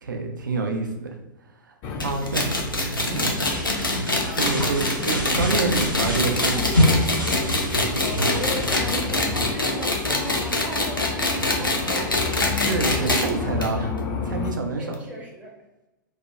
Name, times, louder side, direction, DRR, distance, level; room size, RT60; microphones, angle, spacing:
voice 1, 0.0-1.1 2.0-2.5 3.1-3.3 4.3-6.8 12.5-13.9 14.2-15.0, right 4 dB, 65° right, 3 dB, 0.5 m, -27 dB
sound 1, 1.8-14.5, left 4 dB, 30° left, 0.3 m, -32 dB
sound 2, 2.0-13.3 13.6-13.7 14.0-14.1 14.9-15.0, left 2 dB, 90° left, 0.5 m, -24 dB
sound 3, 2.4-8.8, equal, 85° right, 0.9 m, -27 dB
voice 2, 7.9-12.2 14.8-15.5, equal, 15° right, -2 dB, 0.6 m, -36 dB
2.6 x 2.1 x 2.3 m, 0.95 s
figure-of-eight pair, 105°, 11 cm